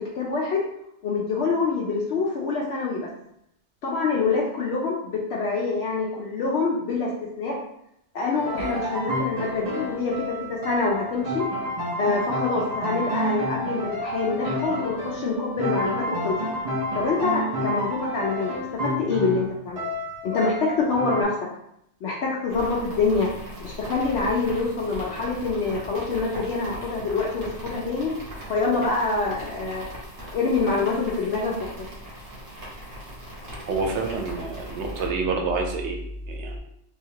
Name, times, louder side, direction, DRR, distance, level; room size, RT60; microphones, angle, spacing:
voice 1, 0.1-0.6 1.0-3.1 3.8-7.1 7.4-7.6 8.1-11.4 12.0-16.4 16.9-18.6 18.8-19.9 20.2-21.3 22.0-23.3 23.6-28.1 28.5-29.8 30.3-31.9, left 4 dB, 70° left, -3 dB, 0.8 m, -25 dB
sound 1, 8.3-21.2, left 1 dB, 40° right, 0.7 m, -30 dB
sound 2, 22.5-35.1, equal, 60° right, 1.4 m, -39 dB
voice 2, 33.7-36.0 36.3-36.6, right 3 dB, 75° right, 2 dB, 0.9 m, -27 dB
3.2 x 3.1 x 2.8 m, 0.76 s
omnidirectional pair, 1.2 m